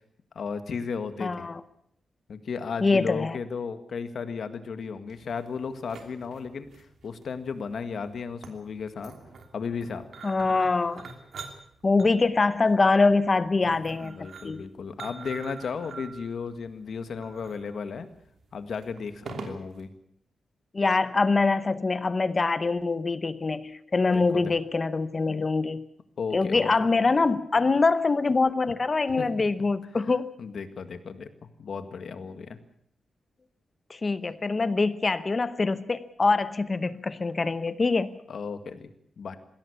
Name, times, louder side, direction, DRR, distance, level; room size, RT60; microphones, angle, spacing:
voice 1, 0.4-1.5 2.3-9.2 9.5-10.0 14.0-18.1 18.5-19.9 24.1-24.4 26.2-26.7 29.2-29.3 30.4-32.6 38.3-38.9 39.2-39.4, left 5 dB, 60° left, 10 dB, 1.8 m, -34 dB
voice 2, 1.2-1.6 2.8-3.4 10.2-11.1 11.8-14.6 20.7-25.8 26.3-30.3 33.9-38.2, left 3 dB, 30° left, 14 dB, 0.8 m, -24 dB
sound 1, 5.1-19.8, right 4 dB, 65° right, 2.9 m, -45 dB
21.0 x 16.5 x 8.5 m, 0.69 s
wide cardioid pair, 160°, 0 cm